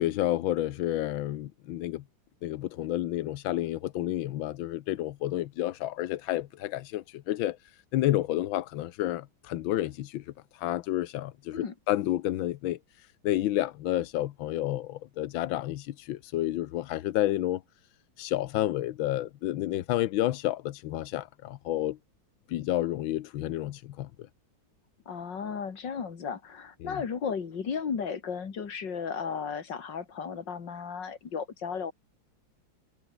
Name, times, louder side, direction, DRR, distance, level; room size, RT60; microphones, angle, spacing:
voice 1, 0.0-2.0 2.4-17.6 18.2-22.0 22.5-24.1 26.8-27.0, left 14 dB, 85° left, 1.5 m, -30 dB
voice 2, 25.1-31.9, left 6 dB, 65° left, 2.9 m, -34 dB
omnidirectional pair, 2.1 m